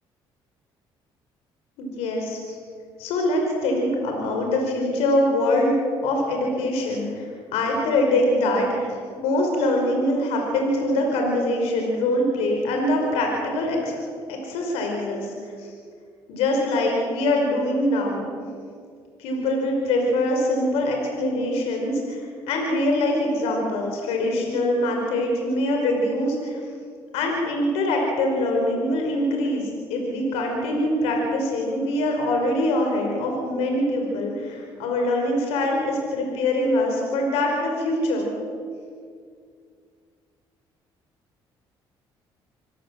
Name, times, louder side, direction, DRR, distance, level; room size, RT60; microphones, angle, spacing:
voice 1, 1.8-2.6 3.0-5.8 6.0-13.9 14.3-15.3 15.6-15.7 16.3-18.3 19.2-26.6 27.1-38.3, left 1 dB, 85° left, 1 dB, 5.1 m, -23 dB
27.0 x 17.0 x 7.6 m, 2.1 s
supercardioid pair, 75°, 10 cm